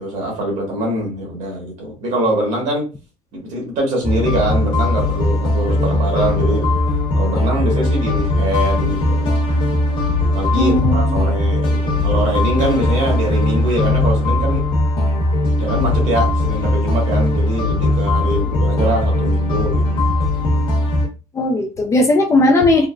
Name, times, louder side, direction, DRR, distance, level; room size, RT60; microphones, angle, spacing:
voice 1, 0.0-2.9 3.3-6.7 7.2-9.3 10.3-14.6 15.6-20.0, right 1 dB, 60° right, -1 dB, 1.5 m, -23 dB
sound 1, 4.0-21.1, left 1 dB, 40° left, 1.0 m, -18 dB
voice 2, 10.5-11.2 21.3-22.9, left 2 dB, 20° left, 2 dB, 0.4 m, -16 dB
3.6 x 2.0 x 2.3 m, 0.32 s
cardioid pair, 160°, 14 cm